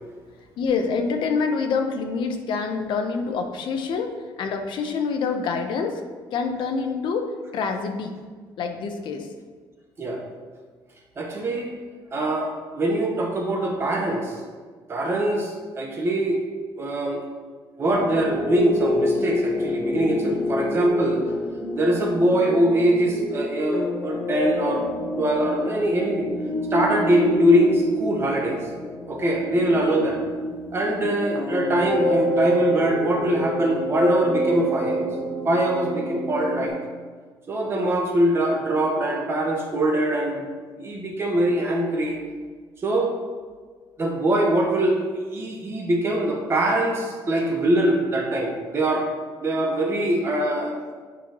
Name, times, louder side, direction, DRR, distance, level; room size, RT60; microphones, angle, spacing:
voice 1, 0.6-4.1 4.4-6.0 6.3-8.1 8.6-9.3, left 5 dB, 65° left, 5 dB, 0.8 m, -26 dB
voice 2, 11.2-11.7 12.1-14.4 14.9-16.4 16.8-17.2 17.8-21.3 21.7-24.9 25.2-26.3 26.7-28.7 29.1-30.2 30.7-35.1 35.4-36.7 37.5-40.5 40.7-42.2 42.8-43.1 44.0-45.0 45.3-49.1 49.4-50.8, right 1 dB, 30° right, 0 dB, 1.2 m, -23 dB
sound 1, 17.9-36.7, left 1 dB, 30° left, 1.2 m, -27 dB
9.0 x 5.4 x 3.0 m, 1.5 s
cardioid pair, 150°, 9 cm